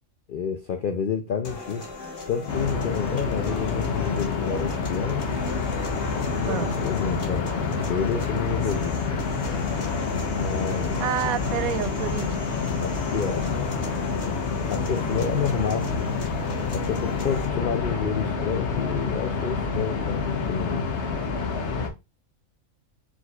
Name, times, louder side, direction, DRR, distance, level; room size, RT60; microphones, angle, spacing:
voice 1, 0.3-1.9 2.3-5.2 6.2-9.0 10.3-11.0 12.8-13.5 14.7-15.9 16.7-20.9, left 6 dB, 90° left, 0.4 m, -29 dB
sound 1, 1.4-17.4, left 3 dB, 40° left, 1.4 m, -39 dB
sound 2, 2.5-21.9, left 4 dB, 55° left, 1.1 m, -28 dB
voice 2, 11.0-12.6 15.0-15.1, right 11 dB, 80° right, 1.0 m, -29 dB
4.9 x 4.1 x 2.3 m
omnidirectional pair, 1.5 m